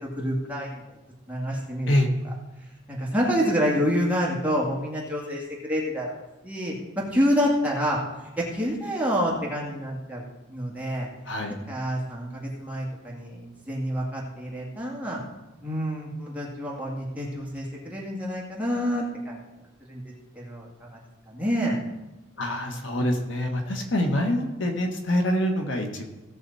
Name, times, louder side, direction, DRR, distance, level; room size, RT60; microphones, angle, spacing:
voice 1, 0.0-0.8 1.3-2.0 2.2-2.3 2.9-6.1 6.4-8.0 8.4-10.2 10.5-11.1 11.5-15.2 15.6-19.4 19.9-20.0 20.3-21.0 21.3-21.8, equal, 5° right, -4 dB, 2.2 m, -28 dB
voice 2, 22.4-26.1, left 1 dB, 65° left, 3 dB, 1.4 m, -25 dB
16.5 x 6.9 x 4.2 m, 1.1 s
head